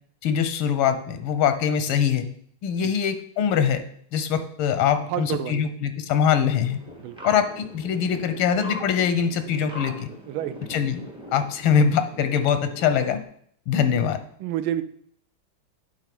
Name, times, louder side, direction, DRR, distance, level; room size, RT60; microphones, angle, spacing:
voice 1, 0.2-2.3 2.6-3.8 4.1-6.8 7.2-10.1 10.7-11.0 11.3-13.2 13.7-14.2, left 7 dB, 85° left, 9 dB, 1.6 m, -23 dB
voice 2, 5.1-5.6 7.0-7.3 10.3-10.6 14.4-14.8, right 12 dB, 90° right, 12 dB, 1.4 m, -29 dB
sound 1, 6.6-13.2, left 1 dB, 5° right, 0.4 m, -40 dB
8.2 x 3.7 x 5.9 m, 0.63 s
omnidirectional pair, 2.2 m